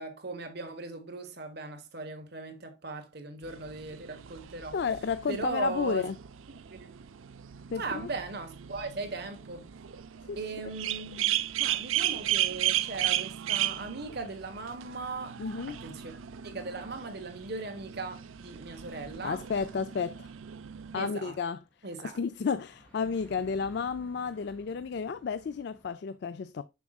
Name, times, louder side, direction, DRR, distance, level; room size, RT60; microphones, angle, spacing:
voice 1, 0.0-4.8 5.3-6.0 6.7-6.9 7.8-9.7 10.4-11.3 11.6-15.4 15.7-16.2 16.4-19.4 20.9-21.4 21.8-22.2, right 3 dB, 50° right, 1.2 m, -38 dB
sound 1, 3.4-21.1, right 12 dB, 75° right, 0.5 m, -35 dB
voice 2, 4.7-6.2 7.7-8.1 10.3-10.4 15.4-15.8 19.2-20.3 20.9-21.6 22.0-26.6, left 5 dB, 55° left, 0.3 m, -32 dB
sound 2, 21.6-25.9, equal, 5° left, 2.8 m, -57 dB
7.0 x 6.2 x 2.3 m
head